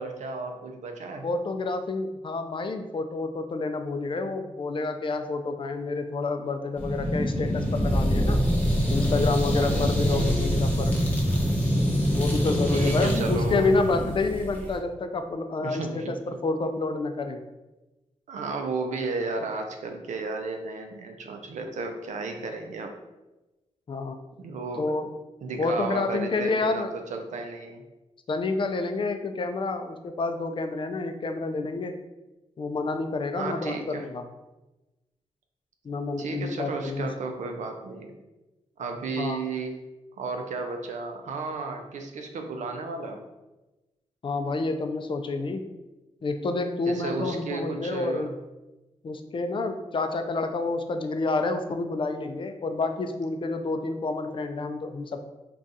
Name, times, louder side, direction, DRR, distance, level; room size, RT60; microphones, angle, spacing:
voice 1, 0.0-1.3 9.6-10.5 12.7-13.7 15.6-16.2 18.3-22.9 24.4-24.8 25.4-27.8 33.3-34.1 36.2-38.1 38.8-39.8 40.2-43.3 46.9-48.3, right 3 dB, 80° right, 4 dB, 0.4 m, -33 dB
voice 2, 1.2-8.4 8.9-10.9 12.1-17.4 23.9-24.2 24.8-25.2 25.6-26.9 28.3-31.9 32.6-34.3 35.8-37.1 39.2-39.4 44.2-45.7 46.2-48.3 49.0-55.2, left 3 dB, 45° left, 7 dB, 0.4 m, -29 dB
sound 1, 6.8-14.8, equal, 10° left, 0.9 m, -25 dB
2.4 x 2.3 x 4.0 m, 1.1 s
cardioid pair, 65°, 12 cm